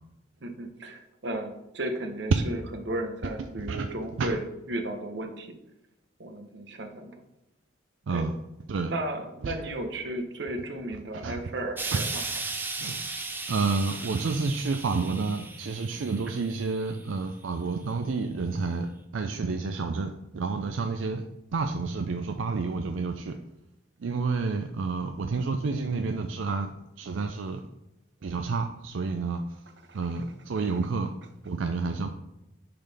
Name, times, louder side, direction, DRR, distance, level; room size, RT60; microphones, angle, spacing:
voice 1, 0.4-5.5 6.2-7.2 8.1-8.3 8.8-12.2 29.8-30.0, right 1 dB, 60° right, 6 dB, 0.9 m, -34 dB
Explosion, 11.8-17.1 17.9-18.0, right 3 dB, 10° right, 0.5 m, -36 dB
voice 2, 13.5-18.9 19.1-21.2 21.5-23.4 24.0-26.7 27.0-27.6 28.2-29.4 29.9-31.1 31.5-32.1, right 4 dB, 75° right, 6 dB, 0.4 m, -29 dB
10.5 x 3.9 x 3.4 m, 0.90 s
head